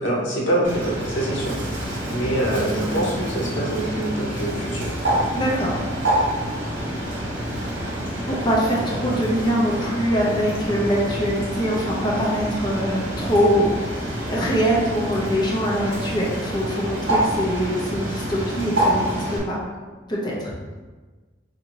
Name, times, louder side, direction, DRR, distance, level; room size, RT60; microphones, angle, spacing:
voice 1, 0.0-4.9 9.0-9.2, right 1 dB, 85° left, -3 dB, 0.9 m, -25 dB
Bird, 0.6-19.4, right 1 dB, 70° right, 1.0 m, -27 dB
voice 2, 5.3-5.8 8.3-19.6 20.1-20.5, equal, 25° left, -5 dB, 0.7 m, -23 dB
4.2 x 2.7 x 2.9 m, 1.3 s
head